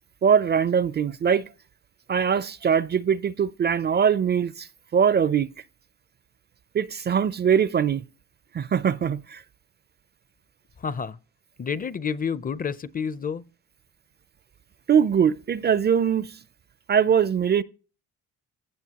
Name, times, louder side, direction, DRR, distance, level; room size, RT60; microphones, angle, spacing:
voice 1, 0.2-1.5 2.1-5.5 6.7-8.0 8.5-9.4 14.9-16.4 16.9-17.6, right 7 dB, 35° right, 0.4 m, -22 dB
voice 2, 10.8-11.2 11.6-13.4, left 6 dB, 30° left, 0.5 m, -29 dB
16.5 x 5.8 x 2.9 m
cardioid pair, 90°, 30 cm